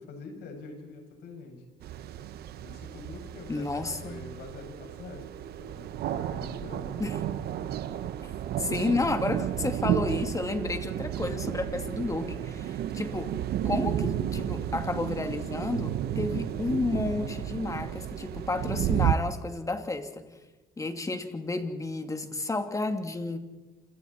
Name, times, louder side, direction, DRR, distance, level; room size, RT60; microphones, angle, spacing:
voice 1, 0.0-1.6 2.6-5.2 5.6-6.9 14.6-14.7, left 3 dB, 75° left, 2 dB, 7.2 m, -45 dB
thunder no rain, 1.8-19.1, right 11 dB, 70° right, 1.1 m, -32 dB
voice 2, 3.5-4.2 7.0-7.2 8.6-13.3 13.6-20.3 20.8-23.4, left 3 dB, 20° left, 6 dB, 2.6 m, -31 dB
27.5 x 27.0 x 4.4 m, 1.2 s
cardioid pair, 110°, 17 cm